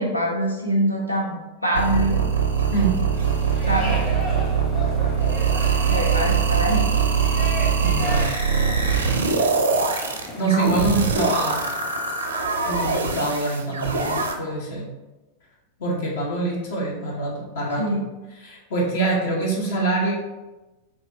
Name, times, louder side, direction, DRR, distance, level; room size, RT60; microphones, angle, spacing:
voice 1, 0.0-2.2 3.7-4.0 5.9-6.9 17.8-18.0, equal, 85° left, 0 dB, 0.9 m, -24 dB
sound 1, 1.7-14.3, right 5 dB, 70° right, 0.6 m, -22 dB
sound 2, 3.1-11.2, equal, 30° left, 1.4 m, -35 dB
voice 2, 7.8-8.3 10.4-11.6 12.6-14.9 15.8-18.0 18.4-20.1, right 2 dB, 55° left, -2 dB, 1.1 m, -25 dB
6.5 x 2.6 x 3.0 m, 1.1 s
figure-of-eight pair, 90°, 0 cm